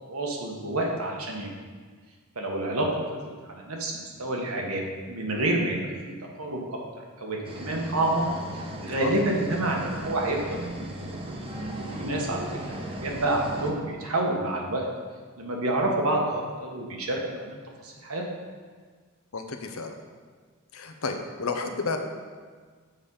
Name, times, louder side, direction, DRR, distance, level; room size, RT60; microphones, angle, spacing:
voice 1, 0.0-1.5 2.3-2.9 3.2-5.9 6.4-6.8 7.2-8.2 8.8-10.4 11.8-14.9 15.4-18.2, right 1 dB, 80° right, -1 dB, 1.4 m, -28 dB
sound 1, 7.4-13.7, right 1 dB, 25° right, 0.8 m, -37 dB
voice 2, 19.3-19.9 20.7-22.0, left 4 dB, 70° left, 5 dB, 0.8 m, -31 dB
7.3 x 5.1 x 5.6 m, 1.5 s
head